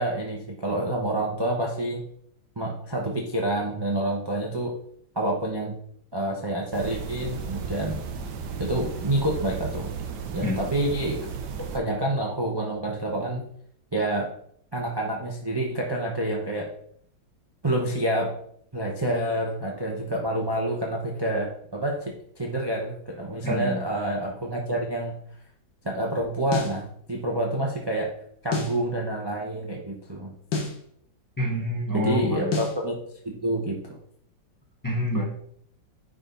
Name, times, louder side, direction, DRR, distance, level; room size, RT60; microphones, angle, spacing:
voice 1, 0.0-2.0 2.6-4.7 5.1-5.8 6.1-8.0 8.6-9.9 10.3-11.2 11.7-13.5 13.9-14.3 14.7-16.7 17.6-18.3 18.7-25.1 25.8-28.1 28.4-30.3 31.9-33.0 33.2-33.8, right 1 dB, 20° right, -1 dB, 0.8 m, -28 dB
sound 1, 6.7-11.8, right 5 dB, 70° right, 1.3 m, -34 dB
voice 2, 23.4-23.8 31.4-32.6 34.8-35.2, left 1 dB, 15° left, -2 dB, 1.0 m, -27 dB
sound 2, 26.5-26.8 28.5-28.8 30.5-30.8 32.5-32.8, left 3 dB, 75° left, 2.0 m, -28 dB
9.9 x 3.9 x 4.1 m, 0.66 s
omnidirectional pair, 2.0 m